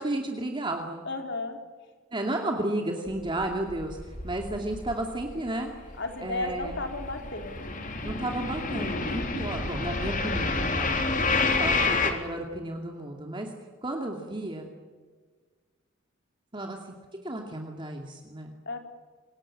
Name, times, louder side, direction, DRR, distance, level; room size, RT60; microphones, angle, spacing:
voice 1, 0.0-1.1 2.1-4.0 4.2-5.7 6.2-6.7 8.0-10.9 11.3-13.5 13.8-14.7 16.5-16.9 17.2-18.5, right 1 dB, 25° right, 2 dB, 2.5 m, -33 dB
voice 2, 1.0-1.6 6.0-7.8 9.1-9.5 11.3-11.6 18.7-18.8, left 2 dB, 60° left, 5 dB, 4.1 m, -35 dB
sound 1, 3.1-5.4 5.7-12.1, left 3 dB, 45° left, 3.4 m, -29 dB
27.0 x 19.0 x 10.0 m, 1.5 s
head